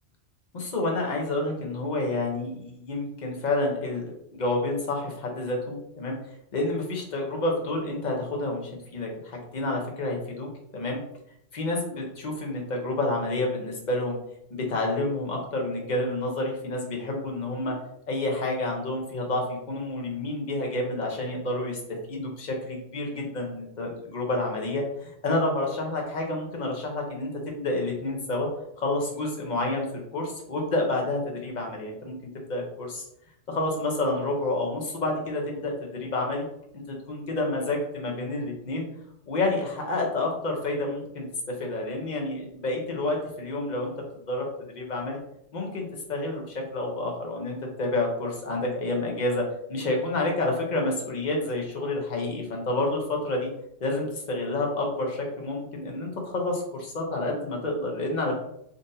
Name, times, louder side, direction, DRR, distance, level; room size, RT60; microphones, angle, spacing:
voice 1, 0.5-6.2 6.5-11.0 11.5-14.2 14.7-17.8 18.1-21.8 22.1-28.5 28.8-32.1 32.5-33.0 33.5-36.5 36.7-38.8 39.3-41.3 41.6-43.9 44.3-44.5 44.8-45.2 45.5-53.5 53.8-58.3, left 2 dB, 45° left, 0 dB, 0.8 m, -29 dB
3.8 x 2.6 x 2.6 m, 0.77 s
omnidirectional pair, 1.2 m